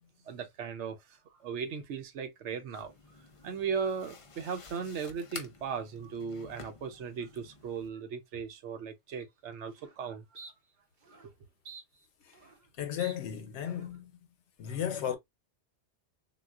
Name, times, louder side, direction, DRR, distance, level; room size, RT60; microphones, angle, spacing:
voice 1, 0.3-2.9 3.4-10.3 11.1-11.3, right 6 dB, 85° right, 1.0 m, -37 dB
sound 1, 2.7-7.9, left 4 dB, 40° left, 0.5 m, -50 dB
sound 2, 9.2-9.3 9.7-10.0 10.3-10.5 11.0-11.3 11.6-12.7 13.0-13.1 13.6-14.0, right 4 dB, 50° right, 0.8 m, -50 dB
voice 2, 12.8-14.1 14.6-15.2, left 9 dB, 85° left, 1.0 m, -34 dB
3.9 x 2.3 x 2.3 m
omnidirectional pair, 1.2 m